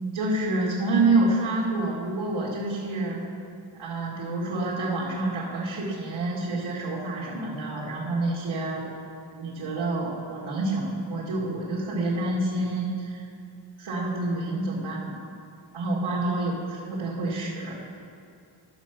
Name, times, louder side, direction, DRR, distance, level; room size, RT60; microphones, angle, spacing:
voice 1, 0.1-3.2 3.7-8.9 9.3-13.2 13.8-15.1 15.7-17.8, right 2 dB, 85° right, -8 dB, 2.3 m, -28 dB
13.0 x 6.7 x 5.9 m, 2.4 s
cardioid pair, 100°, 47 cm